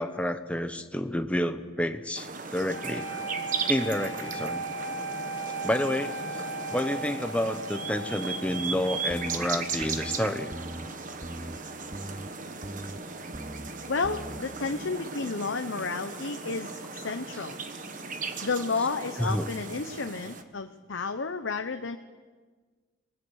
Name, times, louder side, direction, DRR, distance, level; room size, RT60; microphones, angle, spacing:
voice 1, 0.0-3.1 3.7-4.6 5.6-6.4 6.7-10.5 19.2-19.5, left 1 dB, 5° left, 7 dB, 0.9 m, -29 dB
sound 1, 2.1-20.4, right 4 dB, 40° right, 1.3 m, -37 dB
sound 2, 2.7-10.8, right 2 dB, 85° right, 6.6 m, -38 dB
sound 3, 9.1-9.5 9.8-10.2 10.5-10.9 11.2-11.6 11.9-12.3 12.6-13.0 13.3-13.7 14.0-14.4, right 1 dB, 10° right, 0.5 m, -40 dB
voice 2, 13.9-17.6 18.4-22.0, left 4 dB, 75° left, 6 dB, 0.8 m, -31 dB
24.0 x 19.0 x 6.4 m, 1.4 s
head